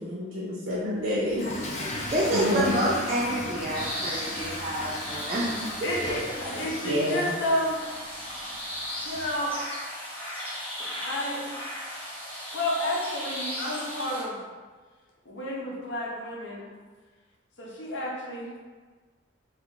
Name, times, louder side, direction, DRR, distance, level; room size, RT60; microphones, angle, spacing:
voice 1, 0.0-1.5 1.8-2.0 2.3-2.9 6.8-7.3, left 1 dB, 80° right, -6 dB, 0.5 m, -28 dB
Toilet flush / Fill (with liquid), 1.2-9.5, left 2 dB, 35° left, 0.4 m, -37 dB
voice 2, 2.1-5.6, right 1 dB, 35° right, -8 dB, 0.4 m, -28 dB
sound 1, 3.7-14.2, equal, 10° left, 0.8 m, -37 dB
voice 3, 5.8-8.0 8.5-8.6 9.0-9.6 11.0-11.5 12.5-14.4 15.2-16.7 17.6-18.5, left 1 dB, 70° left, -3 dB, 0.7 m, -31 dB
2.9 x 2.4 x 3.5 m, 1.4 s
head